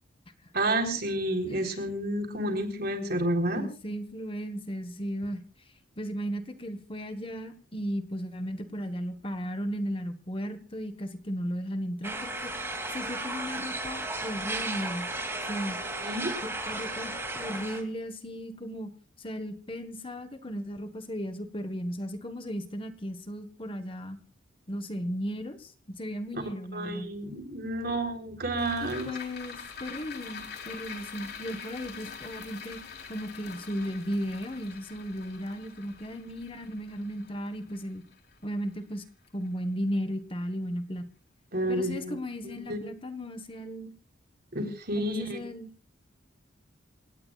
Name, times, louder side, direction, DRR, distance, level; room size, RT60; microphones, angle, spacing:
voice 1, 0.5-3.6 16.0-16.3 26.3-26.4 26.7-29.1 41.5-42.2 42.4-42.8 44.5-45.4, right 1 dB, 50° right, 5 dB, 3.8 m, -30 dB
voice 2, 1.4-1.9 3.5-5.4 6.0-15.1 15.4-15.8 16.4-18.9 19.2-24.2 24.7-27.1 28.8-32.8 33.1-38.0 38.4-39.0 39.3-41.1 41.7-43.9 44.9-45.7, equal, 25° left, 9 dB, 1.3 m, -35 dB
sound 1, 12.0-17.8, right 2 dB, 10° right, 2.6 m, -34 dB
sound 2, 28.6-39.1 39.5-39.6, left 6 dB, 55° left, 3.6 m, -44 dB
28.5 x 17.5 x 2.4 m, 0.36 s
head